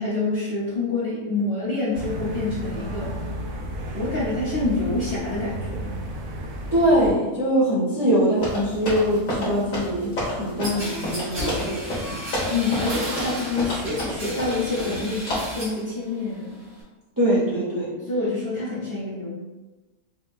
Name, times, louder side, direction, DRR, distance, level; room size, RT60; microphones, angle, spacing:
voice 1, 0.0-3.2 3.9-6.0 12.5-16.6 18.1-19.3, left 3 dB, 45° left, -9 dB, 0.9 m, -27 dB
sound 1, 1.9-7.1, right 1 dB, 85° right, 1.3 m, -33 dB
voice 2, 6.7-12.2 17.2-17.9, equal, 15° right, -9 dB, 0.9 m, -23 dB
sound 2, 8.4-15.0 15.3-15.6, left 1 dB, 65° left, 1.7 m, -30 dB
sound 3, 10.6-15.8 16.2-16.8, equal, 65° right, 1.8 m, -33 dB
5.3 x 2.2 x 2.5 m, 1.2 s
omnidirectional pair, 1.6 m